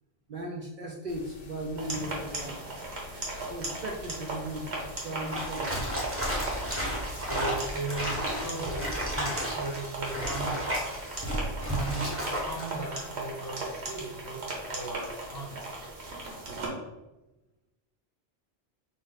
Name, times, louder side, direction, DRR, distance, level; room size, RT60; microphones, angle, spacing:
voice 1, 0.3-2.6 3.5-5.8, right 1 dB, 60° right, 0 dB, 0.6 m, -37 dB
sound 1, 1.1-7.8, left 5 dB, 65° left, 0.8 m, -49 dB
sound 2, 1.8-16.7, right 2 dB, 85° right, 1.3 m, -37 dB
sound 3, 5.3-12.7, equal, 15° right, 0.9 m, -33 dB
voice 2, 7.2-8.8 9.1-10.8 11.6-12.1 12.4-15.6, right 2 dB, 25° left, -4 dB, 0.7 m, -37 dB
5.1 x 2.1 x 3.8 m, 1.0 s
omnidirectional pair, 1.1 m